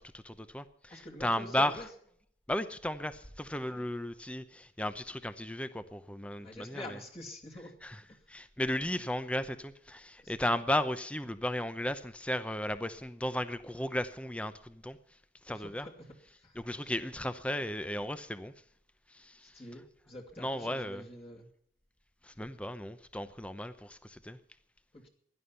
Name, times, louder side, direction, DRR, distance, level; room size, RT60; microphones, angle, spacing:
voice 1, 0.1-1.7 2.5-7.0 7.8-8.0 8.3-15.0 15.4-15.9 16.6-18.5 19.1-19.5 20.4-21.0 22.2-24.4, left 1 dB, 5° left, 12 dB, 0.7 m, -35 dB
voice 2, 0.9-1.9 3.6-3.9 6.4-7.8 8.1-8.2 8.9-9.0 10.2-10.6 15.5-17.1 19.4-21.5 24.9-25.1, left 1 dB, 35° left, -1 dB, 2.5 m, -47 dB
16.5 x 11.5 x 5.7 m, 0.64 s
head